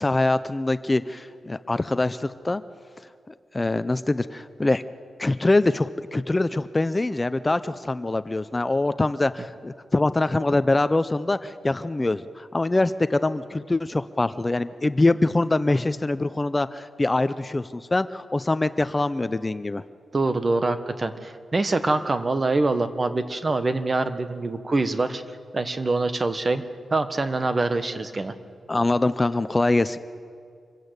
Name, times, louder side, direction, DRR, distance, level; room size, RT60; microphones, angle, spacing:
voice 1, 0.0-2.6 3.5-4.8 5.2-19.8 28.7-30.0, left 2 dB, 25° left, 13 dB, 0.6 m, -24 dB
voice 2, 20.1-25.2 25.5-26.6 26.9-28.3, right 3 dB, 35° right, 9 dB, 1.4 m, -24 dB
26.0 x 15.5 x 8.2 m, 2.3 s
cardioid pair, 80°, 0 cm